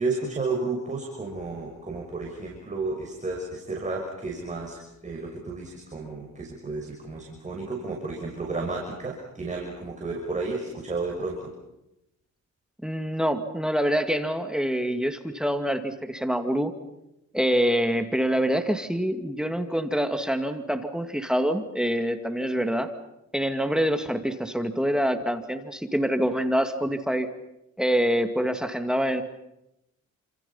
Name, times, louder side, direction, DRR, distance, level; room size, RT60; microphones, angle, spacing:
voice 1, 0.0-11.5, right 3 dB, 25° right, 0 dB, 6.2 m, -32 dB
voice 2, 12.8-16.7 17.3-22.9 23.3-27.3 27.8-29.2, equal, ahead, 7 dB, 2.3 m, -25 dB
30.0 x 27.5 x 5.7 m, 0.87 s
cardioid pair, 90°, 30 cm